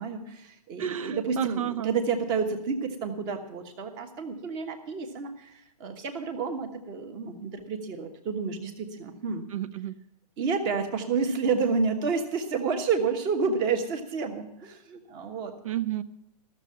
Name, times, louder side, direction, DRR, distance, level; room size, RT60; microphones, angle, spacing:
voice 1, 0.0-9.4 10.4-15.5, right 5 dB, 20° right, 6 dB, 1.2 m, -30 dB
voice 2, 0.8-2.0 9.5-9.9 15.6-16.0, right 11 dB, 55° right, 15 dB, 0.8 m, -31 dB
14.0 x 6.8 x 8.5 m, 0.82 s
hypercardioid pair, 160°, 21 cm